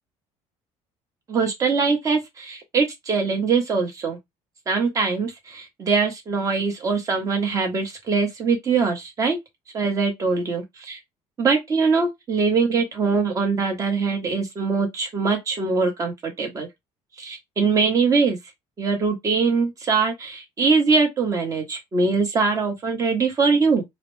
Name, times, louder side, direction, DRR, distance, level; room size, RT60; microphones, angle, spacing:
voice 1, 1.3-4.2 4.7-9.4 9.7-11.0 11.4-16.7 17.2-18.4 18.8-23.8, right 4 dB, 25° right, 1.0 m, -22 dB
4.0 x 2.0 x 3.1 m
cardioid pair, 170°, 12 cm